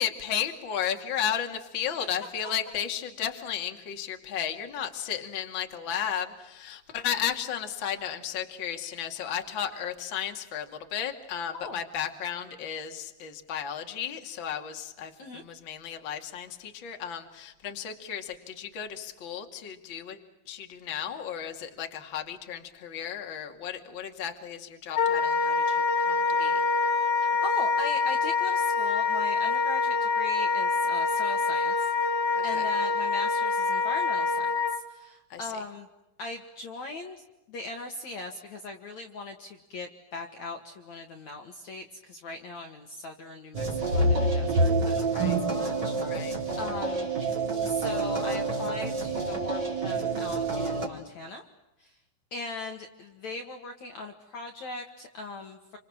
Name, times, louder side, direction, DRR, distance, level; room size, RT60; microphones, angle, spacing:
voice 1, 0.0-20.2 20.5-26.6 32.3-32.7 35.3-35.6 45.1-45.4 46.0-46.3, left 9 dB, 35° left, 4 dB, 2.5 m, -34 dB
Wind instrument woodwind instrument, 24.9-34.8, left 4 dB, 80° left, 4.5 m, -26 dB
voice 2, 27.2-31.9 32.4-35.9 36.2-46.3 46.6-47.1 47.6-51.4 51.8-51.9 52.3-55.8, left 2 dB, 50° left, 4 dB, 2.7 m, -39 dB
sound 1, 43.5-50.9, right 2 dB, 25° right, 4.2 m, -27 dB
29.0 x 26.5 x 7.4 m, 0.96 s
omnidirectional pair, 4.9 m